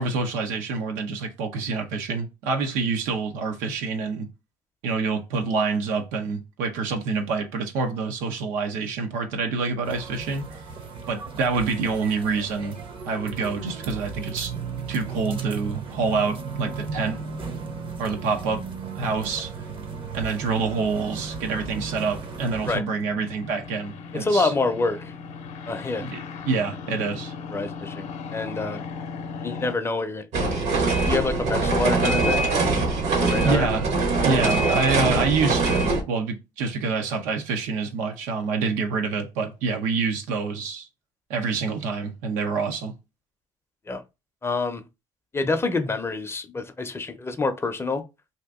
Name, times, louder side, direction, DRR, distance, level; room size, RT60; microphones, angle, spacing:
voice 1, 0.0-4.3 4.8-10.6 11.1-12.8 13.0-14.5 14.9-17.2 18.0-18.6 18.9-19.5 20.1-24.5 26.0-27.3 33.4-33.9 34.2-40.9 41.3-42.9, right 4 dB, 85° right, 0.8 m, -27 dB
sound 1, 9.8-22.8, right 5 dB, 40° right, 0.7 m, -35 dB
sound 2, 15.8-29.8, left 5 dB, 60° left, 0.6 m, -40 dB
voice 2, 24.1-25.1 25.7-26.1 27.5-28.1 28.3-28.8 29.4-32.5 33.2-33.7 43.9-44.0 44.4-44.8 45.3-48.0, left 3 dB, 20° left, 0.6 m, -27 dB
sound 3, 30.3-36.0, right 3 dB, 65° right, 1.1 m, -22 dB
2.8 x 2.5 x 3.5 m
cardioid pair, 100°, 13 cm